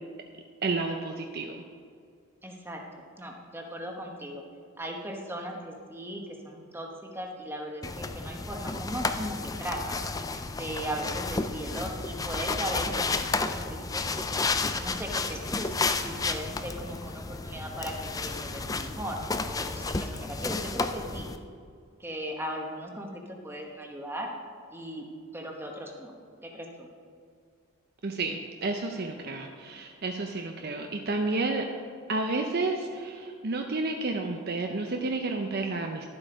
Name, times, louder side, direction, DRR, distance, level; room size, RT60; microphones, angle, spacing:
voice 1, 0.6-1.6 28.0-31.7 32.1-36.1, right 3 dB, 45° right, 3 dB, 0.6 m, -31 dB
voice 2, 2.4-4.4 4.8-10.0 10.5-14.0 14.7-19.2 19.4-21.3 22.0-24.3 24.7-25.1 25.3-26.1 26.4-26.9, equal, 10° right, 1 dB, 1.1 m, -38 dB
sound 1, 7.8-21.4, left 3 dB, 15° left, 0.3 m, -32 dB
12.0 x 7.7 x 5.1 m, 2.2 s
head